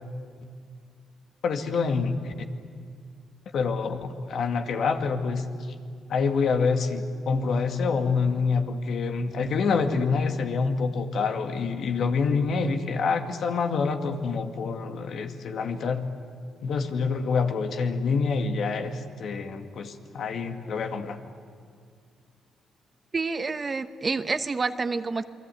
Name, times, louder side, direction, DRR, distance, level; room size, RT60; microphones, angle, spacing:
voice 1, 1.4-2.3 3.5-5.4 6.1-16.0 16.6-21.2, left 4 dB, 65° left, 5 dB, 2.1 m, -26 dB
voice 2, 23.1-25.3, right 4 dB, 30° right, 11 dB, 1.0 m, -28 dB
28.0 x 22.0 x 9.3 m, 2.1 s
cardioid pair, 90°, 0 cm